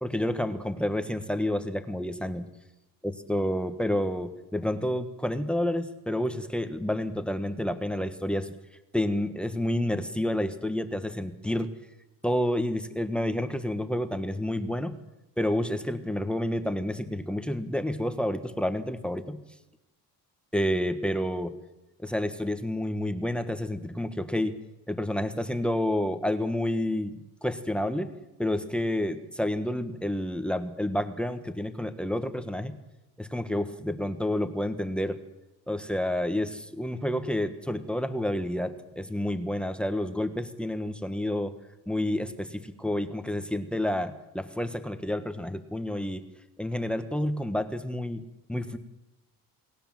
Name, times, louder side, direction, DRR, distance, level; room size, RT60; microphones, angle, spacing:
voice 1, 0.0-2.5 3.0-8.5 8.9-11.7 12.2-15.0 15.4-19.4 20.5-21.6 22.0-24.5 24.9-27.1 27.4-28.1 28.4-32.8 33.2-35.2 35.7-41.5 41.9-46.2 46.6-48.2 48.5-48.8, left 1 dB, 5° left, 10 dB, 1.4 m, -29 dB
29.0 x 19.5 x 7.6 m, 0.97 s
cardioid pair, 155°, 34 cm